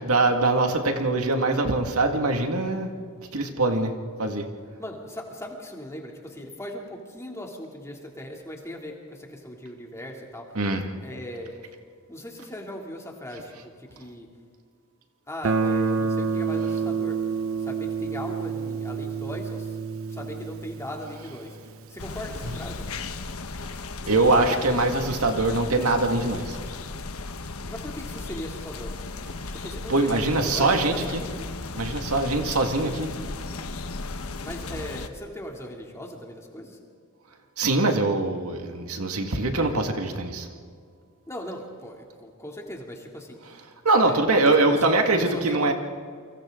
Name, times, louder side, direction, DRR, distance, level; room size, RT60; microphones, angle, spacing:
voice 1, 0.0-2.9 3.3-3.9 4.2-4.5 10.6-10.8 22.4-22.6 24.0-26.6 29.9-31.2 31.7-33.1 37.6-40.5 43.8-45.7, right 2 dB, 85° right, 4 dB, 2.0 m, -23 dB
voice 2, 4.8-10.5 11.0-11.6 12.1-14.3 15.3-17.2 17.6-19.8 20.1-21.6 21.9-22.8 27.6-29.0 29.5-31.3 34.4-36.8 39.6-39.7 41.3-43.4 44.0-45.7, left 1 dB, 15° left, 0 dB, 2.9 m, -38 dB
Guitar, 15.4-22.2, right 5 dB, 70° right, 1.0 m, -28 dB
sound 1, 22.0-35.1, left 3 dB, 80° left, 1.2 m, -36 dB
29.5 x 24.5 x 3.9 m, 2.1 s
head